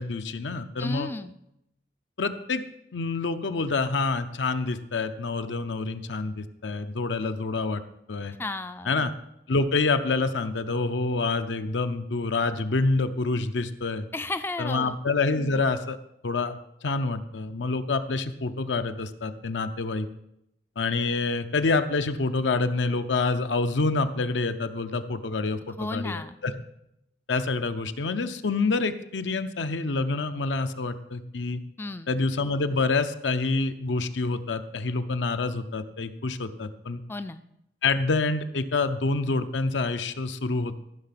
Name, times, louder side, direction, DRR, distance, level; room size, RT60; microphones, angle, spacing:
voice 1, 0.0-1.1 2.2-2.6 2.9-7.8 8.1-8.4 8.9-9.1 9.5-14.1 14.6-16.0 16.2-20.1 20.8-26.5 27.3-31.6 32.1-37.0 37.8-40.8, left 3 dB, 85° left, 10 dB, 0.7 m, -27 dB
voice 2, 0.8-1.3 8.4-9.0 14.1-15.0 25.8-26.4 31.8-32.2 37.1-37.4, left 2 dB, 10° left, 11 dB, 0.3 m, -34 dB
14.0 x 5.9 x 5.8 m, 0.82 s
head